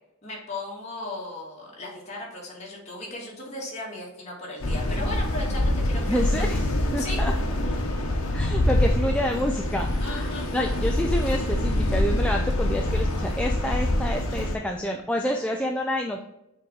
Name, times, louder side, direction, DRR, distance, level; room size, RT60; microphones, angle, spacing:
voice 1, 0.2-6.5 7.0-7.2 10.0-10.5, left 2 dB, 30° left, -4 dB, 2.1 m, -36 dB
sound 1, 4.6-14.6, left 1 dB, 60° left, 1.0 m, -25 dB
voice 2, 6.1-7.3 8.3-16.2, equal, 5° left, 2 dB, 0.3 m, -28 dB
6.4 x 4.2 x 3.7 m, 0.90 s
head